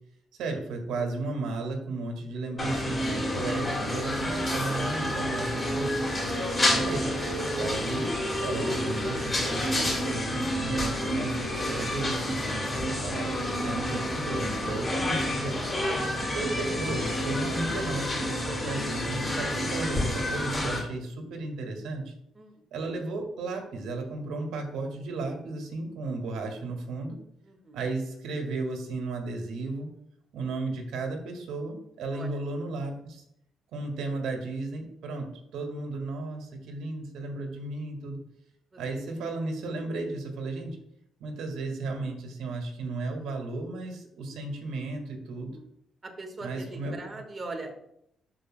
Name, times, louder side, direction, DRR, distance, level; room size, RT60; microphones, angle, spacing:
voice 1, 0.4-6.0 6.7-7.1 7.5-8.1 8.4-15.6 16.0-22.1 22.7-27.2 27.7-29.9 30.3-33.2 33.7-35.3 35.5-38.2 38.8-40.8 41.2-45.5 46.4-46.9, right 3 dB, 85° right, 3 dB, 1.7 m, -34 dB
sound 1, 2.6-20.8, left 1 dB, 25° left, 2.9 m, -29 dB
voice 2, 27.4-27.9 32.1-32.4 38.7-39.2 45.3-45.7 46.0-47.7, right 2 dB, 30° right, 3 dB, 1.5 m, -41 dB
12.5 x 4.9 x 2.2 m, 0.74 s
cardioid pair, 90°, 0 cm